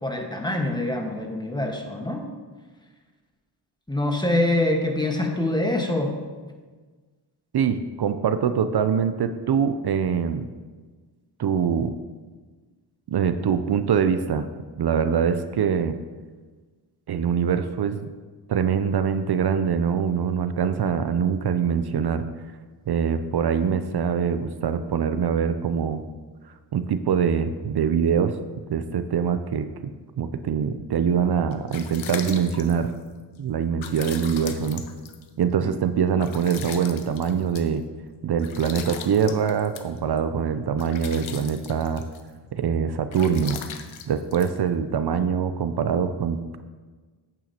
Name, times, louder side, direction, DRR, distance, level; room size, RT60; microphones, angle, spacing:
voice 1, 0.0-2.3 3.9-6.1 35.6-35.8, left 1 dB, 10° left, 2 dB, 1.3 m, -25 dB
voice 2, 7.5-10.5 11.4-11.9 13.1-14.5 14.8-16.0 17.1-18.1 18.5-22.3 22.9-26.0 26.7-28.4 28.7-29.7 30.2-32.9 33.4-34.8 35.4-37.8 38.2-42.0 42.5-43.6 44.1-46.6, right 7 dB, 55° right, 10 dB, 0.6 m, -24 dB
sound 1, 31.3-45.2, left 8 dB, 85° left, 0.7 m, -41 dB
9.1 x 8.5 x 2.8 m, 1.4 s
cardioid pair, 55°, 46 cm